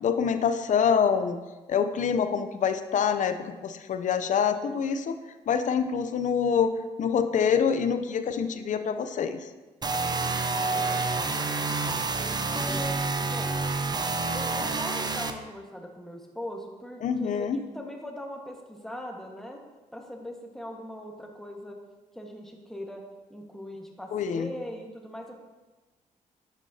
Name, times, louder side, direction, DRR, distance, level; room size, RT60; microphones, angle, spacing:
voice 1, 0.0-1.4 1.7-5.2 5.5-6.7 7.0-9.4 17.0-17.6 24.1-24.5, left 7 dB, 60° left, 10 dB, 0.6 m, -26 dB
sound 1, 9.8-15.3, right 3 dB, 30° right, 0.7 m, -28 dB
voice 2, 10.2-13.6 14.3-19.6 19.9-21.8 22.1-23.0 23.3-25.3, left 1 dB, 5° left, 1 dB, 1.5 m, -40 dB
10.5 x 6.1 x 2.8 m, 1.2 s
supercardioid pair, 65°, 14 cm